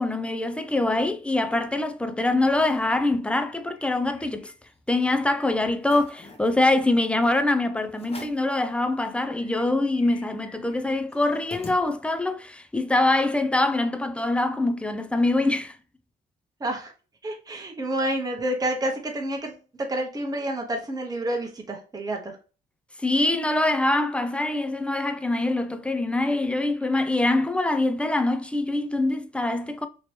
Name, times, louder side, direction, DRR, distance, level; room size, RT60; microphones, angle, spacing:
voice 1, 0.0-4.5 4.9-15.8 23.0-29.9, left 2 dB, 5° left, 0.4 m, -24 dB
sound 1, 1.0-1.8 2.3-2.4 2.6-2.9 3.3-4.9 5.3-5.4 5.8-6.5 7.2-7.4 7.9-8.5 9.0-9.1 9.3-12.3, left 3 dB, 30° left, 1.0 m, -46 dB
voice 2, 16.6-16.9 17.2-22.4, right 1 dB, 20° right, 0.9 m, -29 dB
3.0 x 2.9 x 3.1 m
cardioid pair, 90°, 20 cm